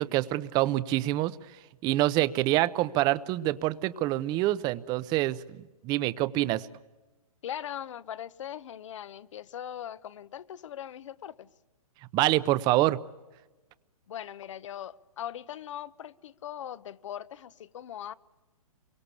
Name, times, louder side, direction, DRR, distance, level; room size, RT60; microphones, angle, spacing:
voice 1, 0.0-1.4 1.8-5.4 5.8-6.7 12.1-13.0, right 16 dB, 20° right, 16 dB, 0.8 m, -26 dB
voice 2, 7.4-11.5 14.1-18.1, left 10 dB, 55° left, 17 dB, 1.1 m, -40 dB
27.5 x 24.0 x 8.4 m, 1.2 s
hypercardioid pair, 145°, 19 cm